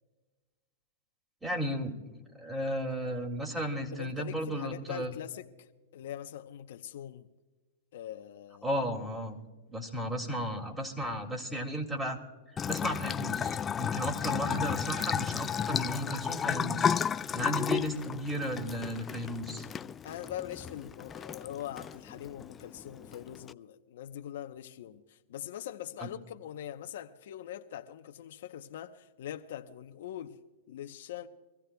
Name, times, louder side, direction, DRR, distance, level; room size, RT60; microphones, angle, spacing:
voice 1, 1.4-5.1 8.6-9.4 9.7-12.2 12.6-16.9 17.3-19.7 26.0-26.1, equal, 10° right, 2.3 m, -34 dB
voice 2, 3.9-5.7 5.9-7.3 7.9-8.7 14.3-14.7 15.6-15.8 20.0-30.4 30.7-31.3, left 11 dB, 70° left, 0.8 m, -42 dB
Bathtub (filling or washing) / Trickle dribble, 12.6-23.5, left 7 dB, 20° left, 0.3 m, -33 dB
25.0 x 15.0 x 2.3 m
hypercardioid pair, 120°, 0 cm